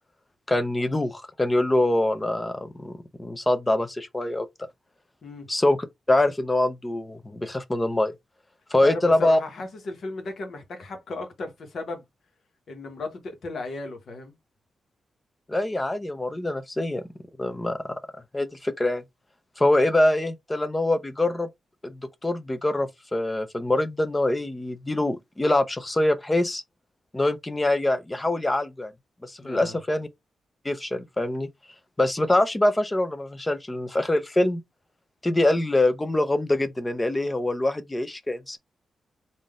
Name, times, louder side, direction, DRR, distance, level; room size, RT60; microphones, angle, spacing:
voice 1, 0.5-4.5 5.5-5.8 6.1-8.1 8.7-9.4 15.5-17.0 17.4-17.8 18.3-19.0 19.6-21.5 21.8-26.6 27.1-28.9 29.2-30.1 30.6-31.5 32.0-34.6 35.2-38.6, left 1 dB, 15° left, 0.5 m, -24 dB
voice 2, 8.8-12.0 12.7-14.3 29.4-29.8, left 3 dB, 65° left, 1.2 m, -35 dB
3.7 x 2.6 x 3.6 m
cardioid pair, 110°, 0 cm